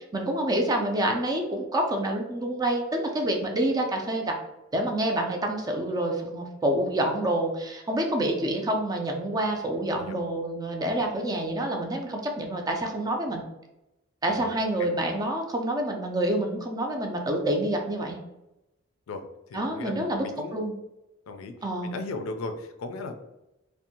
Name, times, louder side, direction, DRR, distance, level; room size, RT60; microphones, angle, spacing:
voice 1, 0.1-4.4 4.7-13.4 14.2-18.2 19.5-20.3 20.5-20.7 21.6-21.9, right 1 dB, 20° right, 2 dB, 0.3 m, -27 dB
voice 2, 19.1-20.6 21.3-21.5 21.8-23.2, left 3 dB, 85° left, 6 dB, 0.4 m, -37 dB
2.6 x 2.1 x 2.7 m, 0.92 s
head